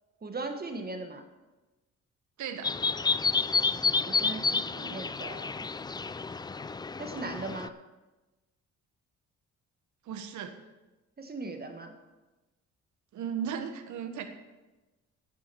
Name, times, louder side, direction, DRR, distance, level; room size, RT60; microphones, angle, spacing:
voice 1, 0.2-1.2 4.1-5.7 7.0-7.7 11.2-11.9, right 3 dB, 30° right, 6 dB, 1.5 m, -38 dB
voice 2, 2.4-2.7 10.0-10.5 13.1-14.2, right 8 dB, 75° right, 7 dB, 1.4 m, -35 dB
sound 1, 2.6-7.7, left 4 dB, 15° left, 0.3 m, -30 dB
9.9 x 8.7 x 6.9 m, 1.1 s
cardioid pair, 90°, 30 cm